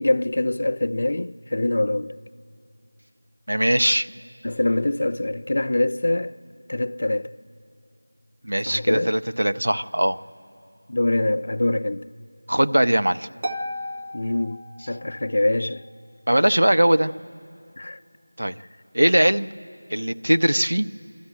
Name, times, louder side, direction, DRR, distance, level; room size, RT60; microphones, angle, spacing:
voice 1, 0.0-2.2 4.4-6.4 6.7-7.3 8.6-9.1 10.9-12.0 14.1-15.9 17.8-18.0 18.6-18.7, left 1 dB, 45° left, 0.5 m, -24 dB
voice 2, 3.5-4.1 8.4-10.2 12.5-13.3 16.3-17.1 18.4-18.5 18.9-19.5 19.9-20.9, right 1 dB, 85° right, 0.6 m, -20 dB
Harp, 13.4-15.3, equal, 35° right, 0.8 m, -34 dB
25.0 x 13.0 x 9.1 m
figure-of-eight pair, 175°, 0 cm